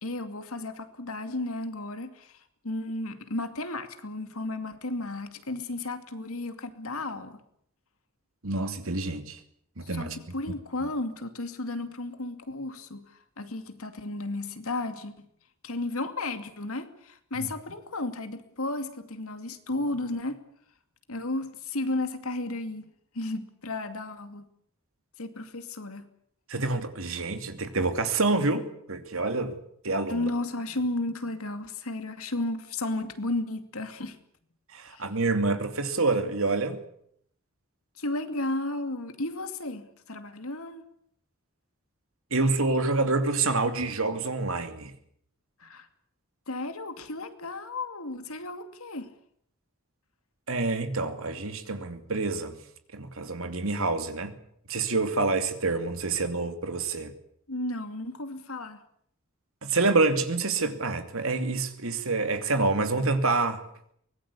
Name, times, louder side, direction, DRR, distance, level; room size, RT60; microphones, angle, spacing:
voice 1, 0.0-2.4 2.6-7.4 9.8-15.2 15.6-20.4 21.1-22.9 23.1-24.5 25.2-26.1 30.1-34.2 34.9-35.1 38.0-40.8 45.6-45.9 46.5-49.1 57.5-58.8, left 2 dB, 75° left, 2.5 m, -33 dB
voice 2, 8.4-9.4 9.8-10.2 10.8-10.9 17.4-17.5 26.5-29.6 29.8-30.3 34.7-36.8 42.3-44.9 50.5-52.6 52.9-54.4 54.7-57.1 59.6-63.6, right 3 dB, 70° right, 2.7 m, -27 dB
24.0 x 19.5 x 8.4 m
head